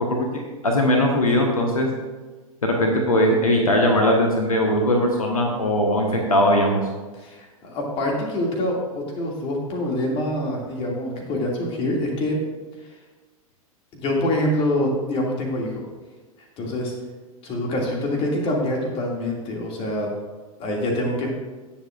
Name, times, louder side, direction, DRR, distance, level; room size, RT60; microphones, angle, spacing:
voice 1, 0.1-1.9 2.6-6.8, left 1 dB, 75° left, 1 dB, 1.3 m, -20 dB
voice 2, 7.2-12.4 13.9-15.8 16.6-16.9 17.4-20.1 20.6-21.3, left 1 dB, 30° left, -1 dB, 2.4 m, -25 dB
18.0 x 7.2 x 2.5 m, 1.3 s
figure-of-eight pair, 95°, 18 cm